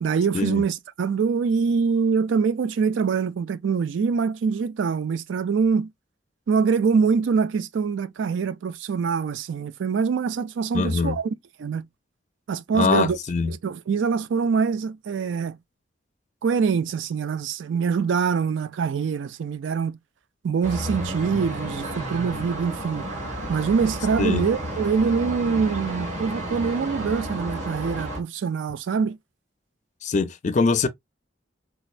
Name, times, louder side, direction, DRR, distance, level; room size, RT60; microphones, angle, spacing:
voice 1, 0.0-5.9 6.5-11.3 11.6-11.8 12.5-13.2 13.5-15.6 16.4-20.0 20.4-23.0 23.5-29.2, right 5 dB, 85° right, 0.4 m, -24 dB
voice 2, 10.7-11.2 12.7-13.5 24.2-24.4 30.0-30.9, left 4 dB, 40° left, 0.4 m, -23 dB
sound 1, 20.6-28.2, right 1 dB, 40° right, 1.4 m, -32 dB
4.2 x 2.3 x 2.4 m
head